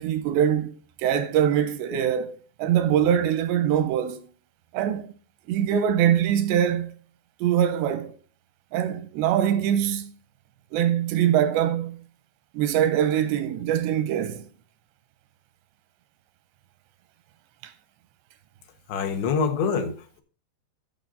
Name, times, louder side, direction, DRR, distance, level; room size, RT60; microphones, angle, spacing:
voice 1, 0.0-4.3 4.7-5.1 5.5-6.9 7.4-8.2 8.7-10.1 10.7-12.0 12.5-14.5 17.6-17.7, right 10 dB, 85° right, 2.9 m, -23 dB
voice 2, 18.9-20.2, left 5 dB, 80° left, 3.6 m, -26 dB
13.5 x 6.5 x 3.9 m
omnidirectional pair, 5.1 m